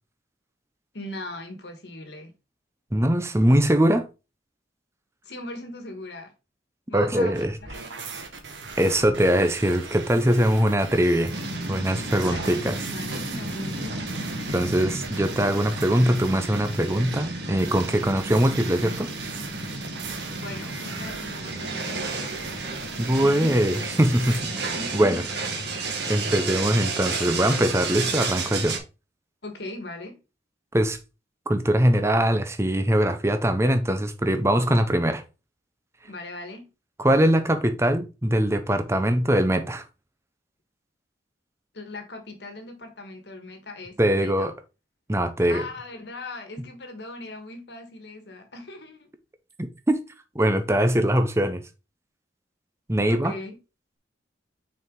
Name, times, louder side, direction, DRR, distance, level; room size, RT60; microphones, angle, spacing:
voice 1, 0.9-2.3 5.2-6.3 6.9-7.3 12.1-12.6 12.9-14.0 20.3-22.3 23.2-23.6 24.6-25.2 29.4-30.2 36.0-36.7 41.7-44.5 45.5-49.1 53.1-53.6, left 2 dB, 65° left, 1.5 m, -39 dB
voice 2, 2.9-4.1 6.9-7.5 8.8-11.4 11.7-12.8 14.5-19.1 23.0-25.2 26.1-28.8 30.7-31.0 31.5-35.2 37.0-39.8 44.0-44.5 45.1-45.7 49.6-50.0 50.3-51.6 52.9-53.3, right 1 dB, 15° right, 0.7 m, -22 dB
sound 1, 7.3-24.4, right 4 dB, 80° right, 1.4 m, -39 dB
sound 2, 11.3-28.8, right 3 dB, 65° right, 1.6 m, -32 dB
5.9 x 4.7 x 3.8 m
head